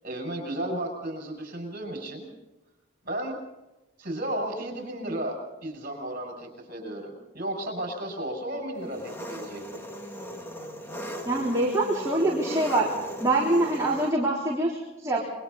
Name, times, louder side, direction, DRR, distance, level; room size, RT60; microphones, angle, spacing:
voice 1, 0.0-2.3 3.0-3.4 4.0-9.8, right 1 dB, 45° right, 3 dB, 6.2 m, -34 dB
Engine, 8.8-14.1, equal, 10° left, 1.7 m, -38 dB
voice 2, 11.3-12.9 13.2-15.2, right 2 dB, 15° right, -5 dB, 3.7 m, -24 dB
27.5 x 23.0 x 4.2 m, 1.0 s
head